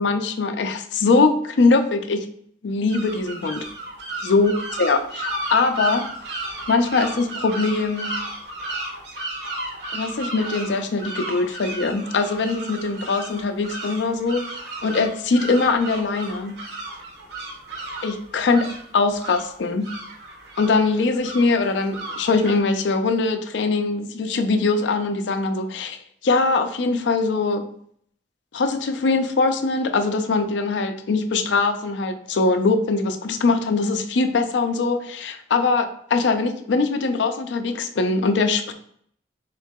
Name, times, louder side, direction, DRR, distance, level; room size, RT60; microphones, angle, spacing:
voice 1, 0.0-2.3 2.6-3.6 4.2-6.0 6.7-8.2 9.9-14.5 14.8-16.6 18.0-18.7 18.9-19.9 20.6-26.0 26.2-27.6 28.5-38.7, left 3 dB, 75° left, 8 dB, 0.4 m, -22 dB
sound 1, 2.9-22.6, right 1 dB, 70° right, 0.9 m, -34 dB
3.8 x 2.7 x 3.5 m, 0.66 s
head